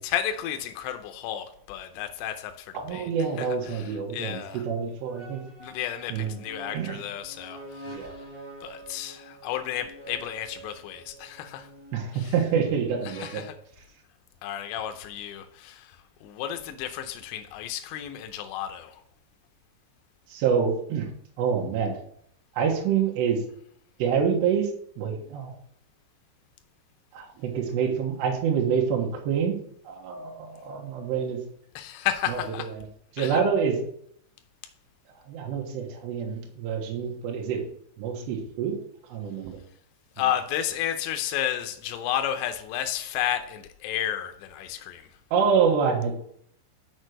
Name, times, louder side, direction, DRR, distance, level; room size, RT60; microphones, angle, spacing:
voice 1, 0.0-3.1 3.4-4.6 5.6-8.2 8.6-11.7 13.1-13.5 14.4-19.0 31.8-32.7 33.2-33.4 40.2-45.1, left 11 dB, 85° left, 2.5 m, -32 dB
voice 2, 2.7-5.4 6.1-6.4 6.7-7.0 7.9-8.1 11.9-13.5 20.3-21.1 21.4-22.0 22.5-23.4 24.0-24.7 25.0-25.6 27.1-29.6 29.8-31.4 32.3-32.4 32.7-32.9 33.1-33.8 35.2-37.7 38.0-38.8 39.0-39.6 40.2-40.3 45.3-46.1, right 6 dB, 70° right, 3.1 m, -26 dB
sound 1, 3.8-4.0 5.1-13.3, right 2 dB, 5° right, 3.1 m, -46 dB
6.6 x 6.3 x 6.4 m
omnidirectional pair, 5.9 m